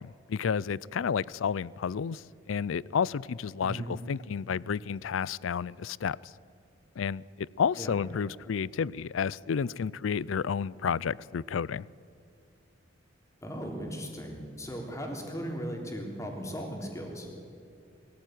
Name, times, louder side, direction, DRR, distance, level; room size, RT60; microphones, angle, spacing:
voice 1, 0.0-6.3 7.0-11.9, left 6 dB, 90° left, 0.4 m, -31 dB
voice 2, 3.6-3.9 7.8-8.0 13.4-17.3, equal, 15° left, 3.5 m, -37 dB
22.0 x 14.5 x 9.3 m
head